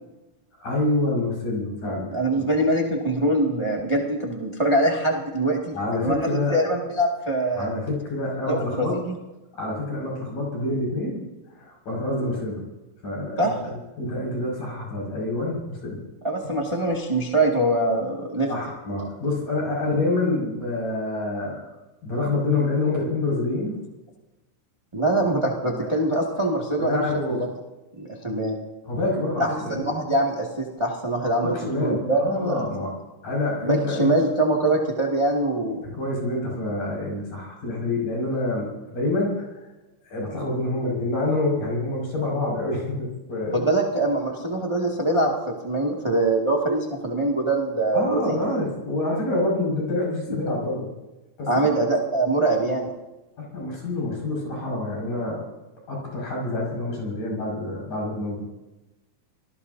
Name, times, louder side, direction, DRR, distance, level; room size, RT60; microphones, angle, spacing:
voice 1, 0.6-2.1 5.7-6.6 7.6-9.0 9.5-11.2 11.6-12.6 13.0-16.0 18.5-21.6 22.0-23.8 25.1-25.2 25.6-25.9 26.8-27.4 28.9-29.9 31.4-32.9 33.2-34.1 35.8-39.6 40.1-43.7 47.9-50.9 51.4-51.8 53.4-55.4 55.9-58.5, left 2 dB, 70° left, -3 dB, 7.4 m, -27 dB
voice 2, 2.1-6.2 6.5-7.7 8.5-9.1 13.4-13.5 16.2-18.5 24.9-27.5 28.0-28.5 29.4-32.6 33.6-35.8 43.5-48.4 50.3-50.4 51.5-52.9, right 1 dB, 15° right, -2 dB, 1.2 m, -23 dB
27.0 x 19.5 x 2.8 m, 1.0 s
omnidirectional pair, 4.0 m